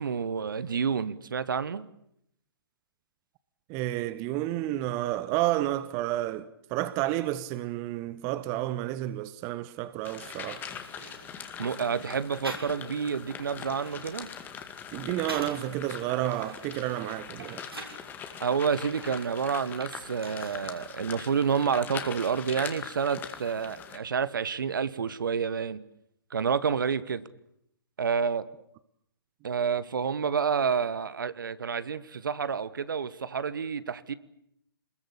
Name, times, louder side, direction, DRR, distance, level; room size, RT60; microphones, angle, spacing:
voice 1, 0.0-1.9 11.6-14.3 18.4-25.8 26.3-27.2 28.0-28.5 29.4-34.1, right 6 dB, 60° right, 1.4 m, -29 dB
voice 2, 3.7-10.6 14.9-17.6, right 14 dB, 25° right, 1.0 m, -30 dB
sound 1, 10.0-24.0, left 7 dB, 15° left, 2.2 m, -42 dB
sound 2, 10.8-11.6 12.4-13.1 13.4-15.7 16.2-18.1 18.6-20.8 21.1-21.9, right 1 dB, 90° right, 7.3 m, -45 dB
27.0 x 21.0 x 8.5 m
figure-of-eight pair, 130°, 12 cm